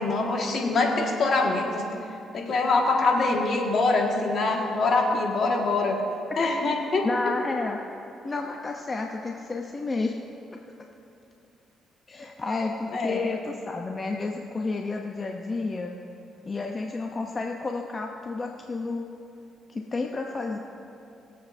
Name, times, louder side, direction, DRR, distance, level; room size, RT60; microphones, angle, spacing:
voice 1, 0.0-1.8 2.3-6.0 6.4-7.1 12.9-13.2, left 3 dB, 55° left, 0 dB, 1.7 m, -24 dB
voice 2, 7.0-7.8 8.2-10.2 12.1-15.9 16.5-19.1 19.7-20.6, left 3 dB, 30° left, 2 dB, 0.7 m, -31 dB
21.0 x 7.8 x 2.7 m, 2.8 s
cardioid pair, 90°, 0 cm